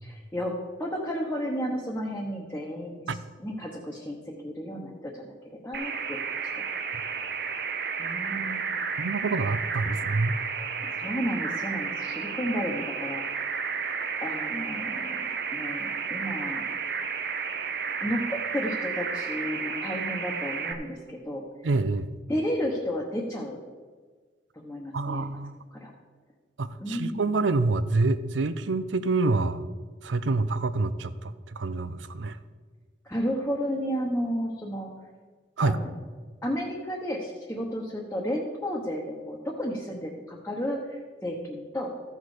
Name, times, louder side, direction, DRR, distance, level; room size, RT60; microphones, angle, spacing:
voice 1, 0.0-4.2 4.4-6.6 8.0-8.8 11.0-13.2 14.2-16.6 18.0-21.4 22.3-23.6 24.5-25.2 25.7-25.9 26.8-27.3 33.0-34.9 35.6-35.9 36.4-41.9, equal, 10° left, -3 dB, 1.0 m, -32 dB
sound 1, 5.7-20.7, right 5 dB, 60° right, 0.9 m, -32 dB
voice 2, 9.0-10.4 21.6-22.1 24.9-25.6 26.6-29.6 30.0-32.4 35.6-35.8, right 3 dB, 90° right, 14 dB, 0.6 m, -27 dB
14.0 x 6.3 x 4.9 m, 1.5 s
head